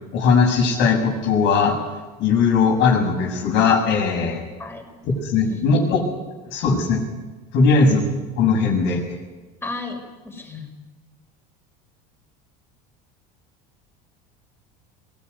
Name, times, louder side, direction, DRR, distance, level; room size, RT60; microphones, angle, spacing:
voice 1, 0.1-1.7 2.2-4.5 5.0-6.0 6.5-7.0 7.5-8.0 8.4-9.0, left 4 dB, 60° left, 3 dB, 6.9 m, -19 dB
voice 2, 9.6-10.0 10.2-10.7, left 3 dB, 10° left, 2 dB, 5.9 m, -33 dB
22.5 x 17.0 x 9.8 m, 1.2 s
supercardioid pair, 95°, 20 cm